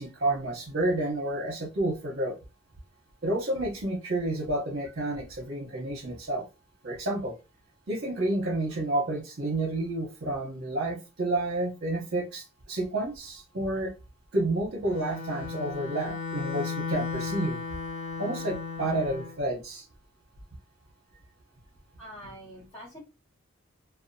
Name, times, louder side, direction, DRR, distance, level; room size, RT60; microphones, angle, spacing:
voice 1, 0.0-2.4 3.2-6.4 6.8-7.3 7.9-13.9 14.3-17.6 18.2-19.8, right 2 dB, 50° right, -1 dB, 0.7 m, -30 dB
Bowed string instrument, 14.9-19.4, left 5 dB, 60° left, 0.5 m, -35 dB
voice 2, 22.0-23.0, equal, 25° left, -7 dB, 0.8 m, -45 dB
2.7 x 2.1 x 2.6 m, 0.28 s
head